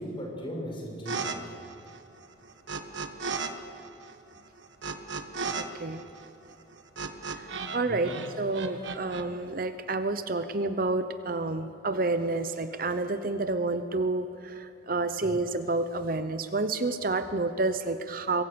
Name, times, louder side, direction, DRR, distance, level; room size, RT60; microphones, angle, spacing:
voice 1, 0.0-1.5 7.8-8.2 15.2-15.4, equal, 25° left, -1 dB, 6.2 m, -38 dB
sound 1, 1.1-1.4 1.6-3.5 3.8-7.8 8.0-9.2, right 4 dB, 70° right, 1.4 m, -35 dB
voice 2, 5.5-6.0 7.3-18.4, right 2 dB, 45° right, 10 dB, 0.8 m, -29 dB
25.5 x 22.5 x 6.9 m, 2.6 s
head